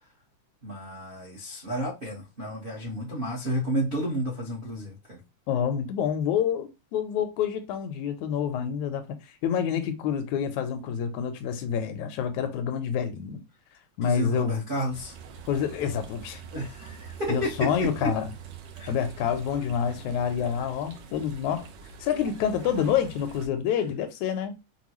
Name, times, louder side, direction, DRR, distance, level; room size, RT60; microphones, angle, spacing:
voice 1, 0.6-5.2 14.0-15.1 16.5-18.1 18.7-18.9, equal, 50° right, 0.6 m, -31 dB
voice 2, 5.5-9.0 9.4-13.4 14.0-14.7 15.5-16.4 17.3-18.3 18.9-21.7 22.0-24.6, left 8 dB, 80° left, 1.9 m, -27 dB
sound 1, 14.9-23.5, right 5 dB, 70° right, 1.5 m, -44 dB
6.0 x 2.3 x 3.0 m
omnidirectional pair, 3.3 m